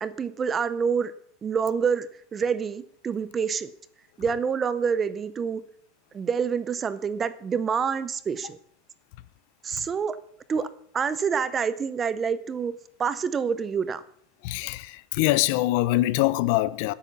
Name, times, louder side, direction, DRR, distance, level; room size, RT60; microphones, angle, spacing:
voice 1, 0.0-1.1 1.4-3.7 4.2-5.6 6.1-8.6 9.6-10.2 10.5-10.7 10.9-14.0, right 6 dB, 15° right, 0.5 m, -27 dB
voice 2, 14.4-16.9, left 17 dB, 45° left, 0.5 m, -24 dB
12.5 x 8.4 x 7.4 m
supercardioid pair, 180°, 0 cm